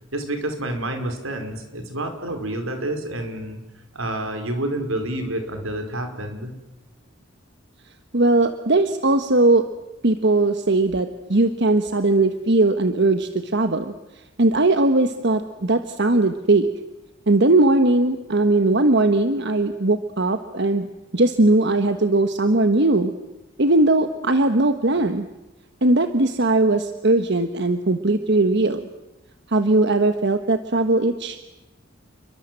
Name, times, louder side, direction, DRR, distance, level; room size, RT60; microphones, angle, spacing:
voice 1, 0.1-3.6 3.9-6.5, right 1 dB, 85° right, 6 dB, 5.1 m, -28 dB
voice 2, 8.1-9.7 10.0-13.9 14.4-16.7 17.3-20.9 21.1-23.1 23.6-25.3 25.8-28.8 29.5-31.4, right 2 dB, 60° right, 8 dB, 1.3 m, -19 dB
29.5 x 23.5 x 7.7 m, 0.98 s
head